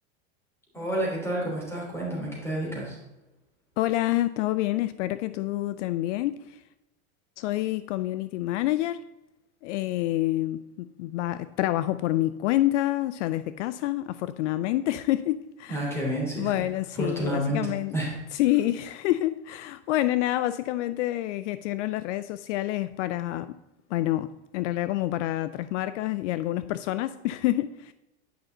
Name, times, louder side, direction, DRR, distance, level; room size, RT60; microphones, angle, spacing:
voice 1, 0.7-3.0 15.7-16.6 16.9-17.6 17.9-18.1, right 1 dB, 5° left, 3.2 m, -29 dB
voice 2, 3.8-6.6 7.4-9.0 9.6-15.8 16.4-17.9 18.3-23.6 23.9-27.9, left 15 dB, 70° left, 0.5 m, -27 dB
9.6 x 5.4 x 3.9 m
supercardioid pair, 135°, 37 cm